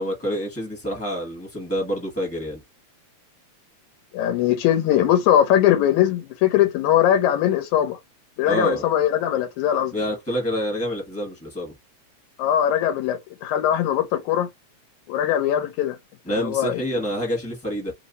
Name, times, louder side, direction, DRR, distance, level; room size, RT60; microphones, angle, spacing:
voice 1, 0.0-2.6 8.4-8.9 9.9-11.7 16.2-17.9, equal, 15° left, 0.5 m, -27 dB
voice 2, 4.1-8.0 8.4-10.0 12.4-14.5 15.1-16.0 16.4-16.8, left 11 dB, 85° left, 2.1 m, -20 dB
4.6 x 2.0 x 2.6 m
omnidirectional pair, 3.3 m